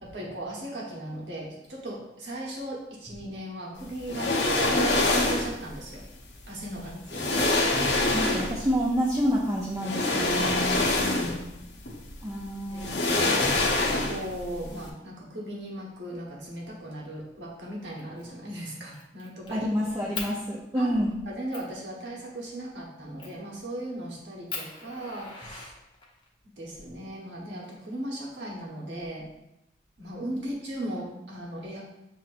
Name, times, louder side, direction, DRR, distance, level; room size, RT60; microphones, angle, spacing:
voice 1, 0.0-6.1 6.5-7.5 10.3-11.4 12.3-12.4 12.6-20.1 20.7-20.9 21.3-25.7 26.6-29.3 30.0-31.8, right 1 dB, 85° right, -3 dB, 1.2 m, -38 dB
sound 1, 4.1-5.6 6.6-6.7 7.1-8.7 9.8-11.5 11.9-12.0 12.8-14.4 14.7-14.8, left 2 dB, 75° left, 0.8 m, -25 dB
voice 2, 8.1-10.9 12.2-13.0 19.5-21.2, equal, 20° right, -4 dB, 0.5 m, -28 dB
Fire, 18.0-18.3 18.6-19.6 20.1-20.3 20.9-21.0 21.5-21.7 23.2-23.5 24.0-24.1 24.5-26.3 27.3-28.3, left 4 dB, 25° left, 0.7 m, -39 dB
7.2 x 2.9 x 2.5 m, 0.89 s
head